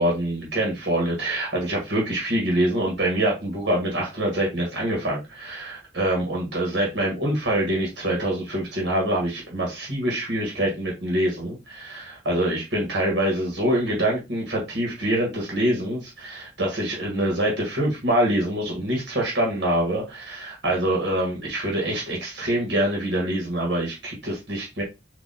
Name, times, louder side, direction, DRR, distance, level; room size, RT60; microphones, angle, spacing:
voice 1, 0.0-24.8, right 1 dB, 70° right, -2 dB, 1.6 m, -25 dB
3.9 x 2.8 x 4.1 m, 0.24 s
head